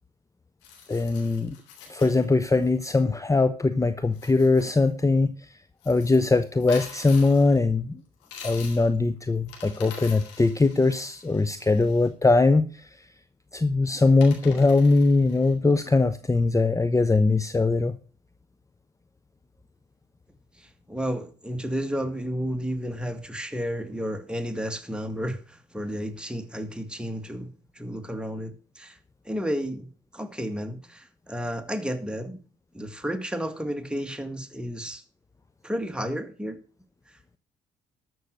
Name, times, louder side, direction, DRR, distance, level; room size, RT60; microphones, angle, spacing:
sound 1, 0.6-2.8 4.0-4.9 5.8-7.6 8.2-8.9 9.3-12.1 13.6-13.7 14.2-15.5, left 6 dB, 85° left, 3.5 m, -45 dB
voice 1, 0.9-1.6 1.9-5.3 5.9-8.0 8.4-12.9 13.5-18.0, left 3 dB, 15° left, 0.8 m, -21 dB
voice 2, 20.6-29.0 29.3-32.4 32.7-35.0 35.6-36.6, equal, 5° right, 1.9 m, -32 dB
13.0 x 6.3 x 6.4 m
hypercardioid pair, 50°, 18 cm